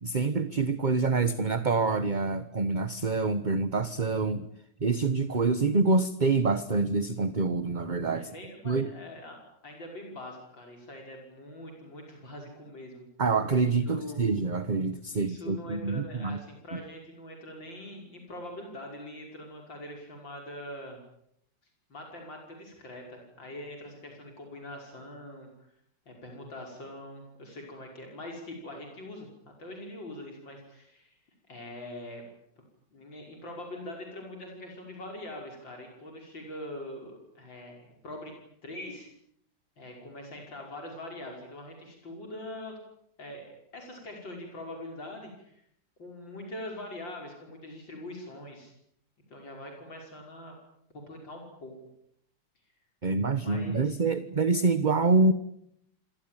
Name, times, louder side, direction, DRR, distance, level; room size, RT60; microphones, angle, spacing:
voice 1, 0.0-4.5 4.8-8.3 8.6-8.9 13.2-16.4 16.7-16.8 53.0-55.3, right 3 dB, 30° right, 12 dB, 1.1 m, -26 dB
voice 2, 8.1-13.0 13.6-14.2 15.1-21.0 21.9-25.7 26.1-31.2 31.5-32.2 32.9-38.3 38.6-39.1 39.8-42.8 43.2-45.6 46.0-48.7 49.3-50.6 50.9-51.8 53.4-53.9, left 1 dB, 85° left, 1 dB, 6.3 m, -43 dB
28.0 x 22.5 x 9.0 m, 0.73 s
omnidirectional pair, 2.0 m